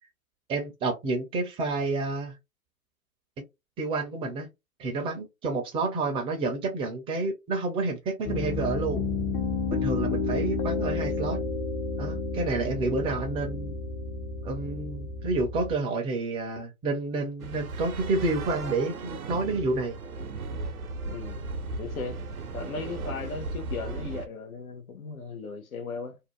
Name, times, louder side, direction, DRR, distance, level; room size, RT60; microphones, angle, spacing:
voice 1, 0.5-2.4 3.4-3.5 3.8-4.5 4.8-9.0 9.7-11.4 12.0-13.7 14.4-20.0, right 3 dB, 15° right, 0.5 m, -29 dB
Piano, 8.2-15.7, left 3 dB, 40° left, 0.7 m, -31 dB
sound 1, 17.4-24.3, right 3 dB, 90° right, 0.7 m, -36 dB
voice 2, 21.1-22.2 22.5-26.2, left 4 dB, 80° left, 0.8 m, -37 dB
2.6 x 2.1 x 2.9 m
hypercardioid pair, 115°, 42 cm